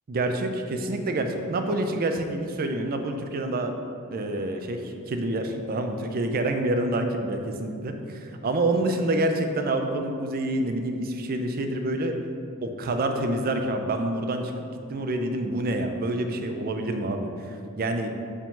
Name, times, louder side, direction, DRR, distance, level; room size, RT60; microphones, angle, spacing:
voice 1, 0.1-3.7 4.1-12.1 12.6-14.5 14.9-18.1, right 1 dB, 40° right, 5 dB, 0.5 m, -27 dB
5.0 x 3.7 x 5.4 m, 2.5 s
head